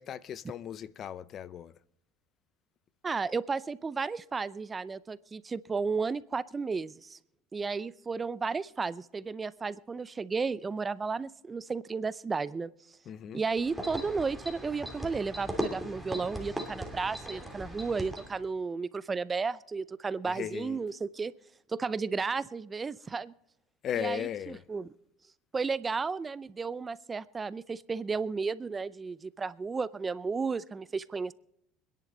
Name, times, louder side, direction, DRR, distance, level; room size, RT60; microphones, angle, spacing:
voice 1, 0.0-1.7 13.1-13.5 20.2-20.8 23.8-24.7, left 9 dB, 45° left, 0.6 m, -37 dB
voice 2, 3.0-7.2 7.5-12.7 13.3-21.3 21.7-23.3 24.0-24.9 25.5-31.3, right 4 dB, 20° right, 0.5 m, -33 dB
sound 1, 13.6-18.4, equal, ahead, 2.9 m, -38 dB
26.0 x 10.5 x 3.9 m
supercardioid pair, 115°, 0 cm